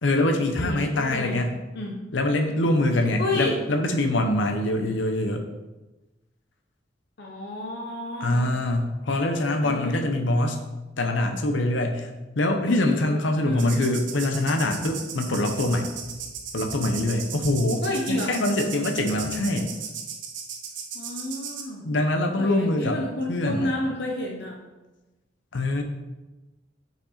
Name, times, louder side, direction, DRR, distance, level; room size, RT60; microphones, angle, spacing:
voice 1, 0.0-1.5 2.1-5.5 8.2-10.6 11.0-12.1 12.4-15.9 16.5-19.7 21.8-23.0 23.3-23.7 25.5-25.8, left 1 dB, 85° left, 5 dB, 0.8 m, -24 dB
voice 2, 0.6-1.3 1.7-2.0 3.2-3.6 7.2-8.5 9.6-10.0 12.6-13.1 13.4-13.7 17.8-18.4 20.9-21.8 22.4-24.6, left 1 dB, 65° left, 0 dB, 0.9 m, -30 dB
sound 1, 13.6-21.6, right 6 dB, 80° right, 0.9 m, -36 dB
6.0 x 5.6 x 4.2 m, 1.1 s
head